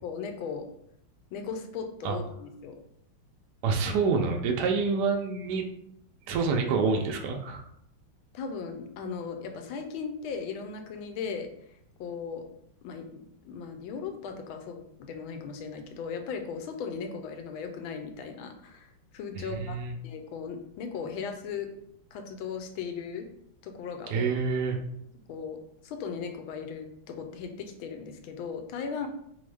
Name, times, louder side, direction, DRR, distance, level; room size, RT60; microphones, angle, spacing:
voice 1, 0.0-0.7 1.3-2.8 8.3-11.5 12.0-12.4 12.8-19.8 20.0-21.7 22.1-23.3 23.6-24.3 25.3-25.6 25.8-29.1, left 6 dB, 80° left, 5 dB, 1.4 m, -37 dB
voice 2, 3.6-5.6 6.3-7.6 19.4-19.9 24.1-24.8, right 4 dB, 75° right, 3 dB, 0.9 m, -27 dB
3.9 x 3.5 x 3.3 m, 0.73 s
omnidirectional pair, 2.3 m